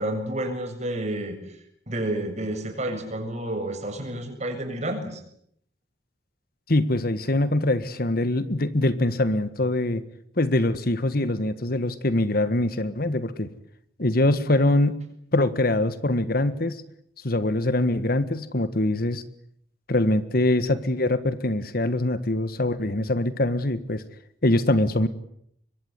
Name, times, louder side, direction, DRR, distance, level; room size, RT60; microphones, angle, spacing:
voice 1, 0.0-5.2, right 1 dB, 40° right, 5 dB, 7.3 m, -30 dB
voice 2, 6.7-10.0 10.4-13.5 14.0-15.0 15.3-16.8 17.2-19.2 19.9-24.0 24.4-25.1, left 1 dB, 55° left, 13 dB, 1.6 m, -23 dB
25.0 x 23.0 x 9.5 m, 0.71 s
head